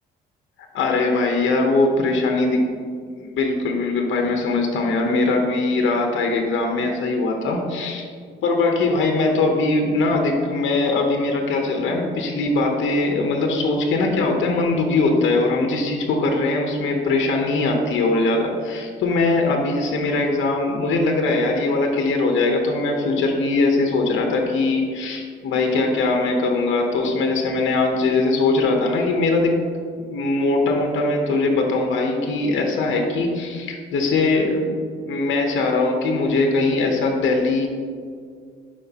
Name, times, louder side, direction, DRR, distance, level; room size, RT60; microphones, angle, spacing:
voice 1, 0.7-2.6 3.2-8.1 8.4-29.5 30.1-37.7, left 3 dB, 75° left, 2 dB, 1.0 m, -21 dB
11.0 x 5.0 x 2.9 m, 2.1 s
cardioid pair, 90°, 20 cm